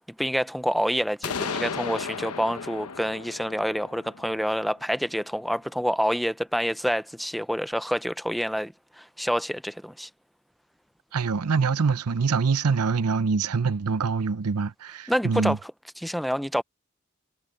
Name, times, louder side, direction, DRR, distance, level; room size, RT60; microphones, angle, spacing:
voice 1, 0.2-10.1 15.1-15.6 16.0-16.6, equal, ahead, 0.4 m, -27 dB
sound 1, 1.2-5.0, left 5 dB, 80° left, 0.9 m, -35 dB
voice 2, 11.1-15.6, right 5 dB, 90° right, 0.7 m, -24 dB
head